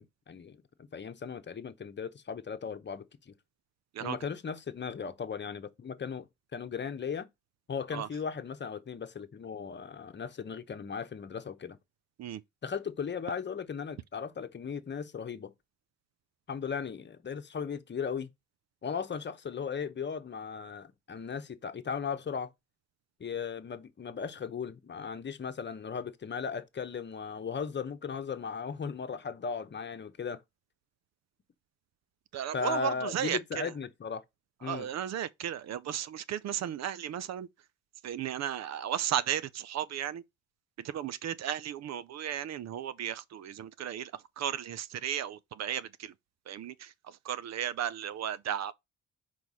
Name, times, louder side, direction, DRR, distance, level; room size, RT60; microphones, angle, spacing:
voice 1, 0.0-3.3 4.0-6.3 6.5-7.3 7.7-11.8 12.6-15.5 16.5-18.3 18.8-22.5 23.2-30.4 32.5-34.2 34.6-34.9, left 6 dB, 35° left, 1.0 m, -37 dB
voice 2, 32.3-33.7 34.6-37.5 38.0-40.2 40.8-46.1 46.5-48.7, right 10 dB, 60° right, 0.6 m, -35 dB
4.7 x 4.6 x 5.5 m
cardioid pair, 90°, 30 cm